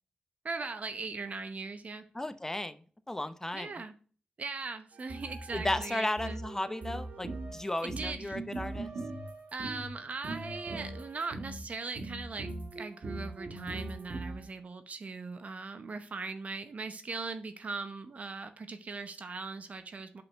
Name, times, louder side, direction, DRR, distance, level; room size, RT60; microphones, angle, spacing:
voice 1, 0.4-2.1 3.5-3.9 4.4-6.4 7.8-8.4 9.5-20.2, right 4 dB, 55° right, 9 dB, 0.8 m, -39 dB
voice 2, 2.1-3.7 5.5-8.9, left 1 dB, 15° left, 10 dB, 0.8 m, -34 dB
sound 1, 4.9-9.9 10.2-11.6 12.0-14.5, right 2 dB, 75° right, 1.6 m, -40 dB
5.6 x 5.3 x 5.7 m, 0.42 s
cardioid pair, 70°, 3 cm